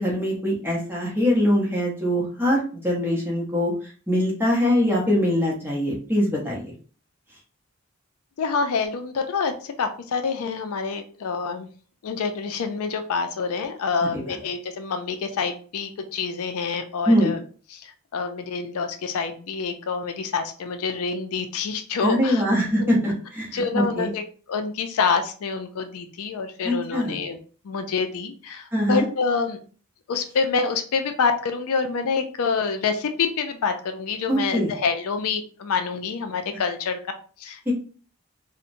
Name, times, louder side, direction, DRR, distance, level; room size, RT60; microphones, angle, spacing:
voice 1, 0.0-3.7 4.1-6.7 14.1-14.2 17.1-17.3 22.0-24.1 26.6-27.2 28.7-29.0 34.3-34.7 37.7-37.8, equal, 10° right, -4 dB, 0.7 m, -22 dB
voice 2, 8.4-9.5 9.8-11.7 12.0-17.4 17.7-17.8 18.1-22.4 22.8-22.9 23.5-24.2 24.5-27.4 27.6-29.6 30.1-37.0 37.4-37.7, left 5 dB, 75° left, 7 dB, 0.4 m, -27 dB
2.8 x 2.1 x 2.5 m, 0.40 s
head